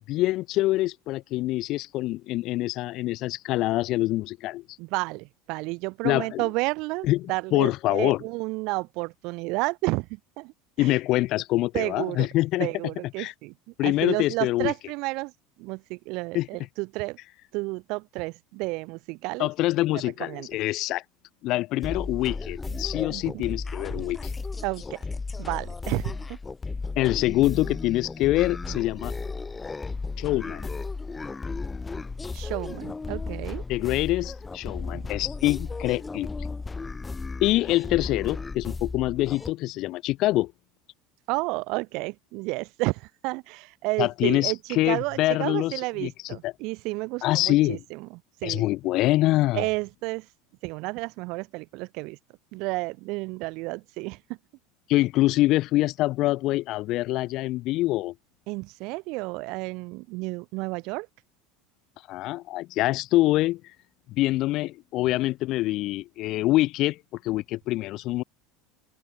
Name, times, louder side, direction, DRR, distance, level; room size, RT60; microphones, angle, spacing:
voice 1, 0.1-4.6 6.0-6.4 7.0-8.2 10.8-12.7 13.2-13.3 13.8-14.7 16.3-16.5 19.4-21.0 21.4-24.3 27.0-29.1 30.2-30.7 33.7-36.3 37.4-40.5 44.0-45.7 46.0-46.1 46.4-46.5 47.2-47.8 48.4-49.7 54.9-58.1 62.1-63.6 64.2-67.0 67.2-68.2, left 17 dB, 50° left, 0.4 m, -25 dB
voice 2, 4.8-10.9 11.7-12.3 12.6-13.5 13.8-15.3 15.6-17.2 17.5-19.5 20.2-20.5 23.1-23.4 23.9-24.1 24.6-25.0 25.4-26.4 32.3-33.6 41.3-48.7 49.5-50.3 50.6-52.2 52.5-54.2 58.5-61.1, right 25 dB, 60° right, 2.2 m, -31 dB
sound 1, 21.8-39.5, left 4 dB, 15° left, 1.7 m, -34 dB
open air
supercardioid pair, 135°, 0 cm